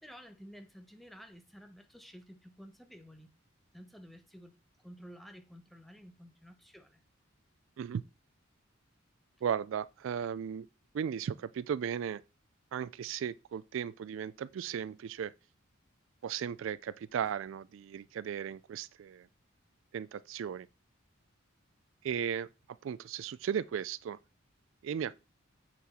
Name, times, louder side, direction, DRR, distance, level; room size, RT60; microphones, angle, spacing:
voice 1, 0.0-3.3 3.7-7.0, equal, ahead, 0.8 m, -52 dB
voice 2, 9.4-10.7 10.9-12.2 12.7-15.3 16.2-19.3 19.9-20.7 22.0-22.5 22.8-24.2 24.8-25.2, right 8 dB, 65° right, 0.3 m, -36 dB
7.6 x 5.9 x 4.2 m
head